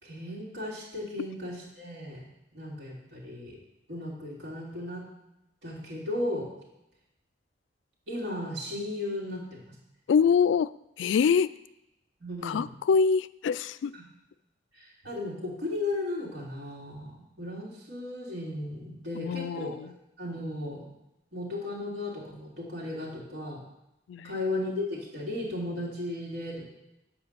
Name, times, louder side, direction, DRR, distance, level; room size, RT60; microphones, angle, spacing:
voice 1, 0.0-2.2 2.5-3.6 3.9-5.1 5.6-6.5 8.1-9.8 12.2-12.6 13.9-14.0 14.7-19.8 20.2-20.9 21.3-23.6 24.2-26.7, left 2 dB, 75° right, -4 dB, 2.9 m, -35 dB
voice 2, 10.1-10.7 11.0-11.5 12.4-13.9 19.2-19.7 24.1-24.3, left 6 dB, 75° left, 16 dB, 0.3 m, -25 dB
8.3 x 5.0 x 6.7 m, 0.88 s
head